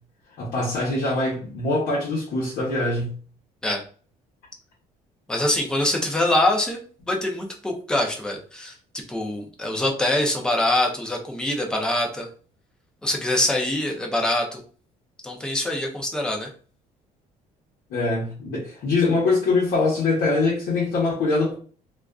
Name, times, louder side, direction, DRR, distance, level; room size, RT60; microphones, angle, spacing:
voice 1, 0.4-3.1 17.9-21.5, left 3 dB, 60° left, -5 dB, 0.8 m, -23 dB
voice 2, 5.3-6.8 7.1-8.8 9.1-12.3 13.0-14.6 15.2-16.5, left 1 dB, 5° left, 1 dB, 0.4 m, -24 dB
2.5 x 2.3 x 2.2 m, 0.41 s
cardioid pair, 175°, 15 cm